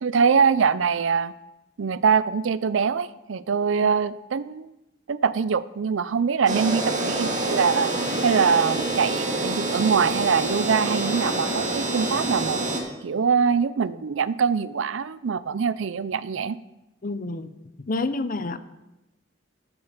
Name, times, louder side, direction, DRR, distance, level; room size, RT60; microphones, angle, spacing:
voice 1, 0.0-1.3 1.8-4.7 5.1-7.9 8.2-12.6 13.0-16.6, right 6 dB, 80° right, 17 dB, 0.5 m, -23 dB
sound 1, 6.5-12.8, right 2 dB, 40° right, 1.8 m, -26 dB
voice 2, 17.0-17.5 17.8-18.6, left 2 dB, 45° left, 12 dB, 0.7 m, -29 dB
8.7 x 8.5 x 6.6 m, 0.94 s
head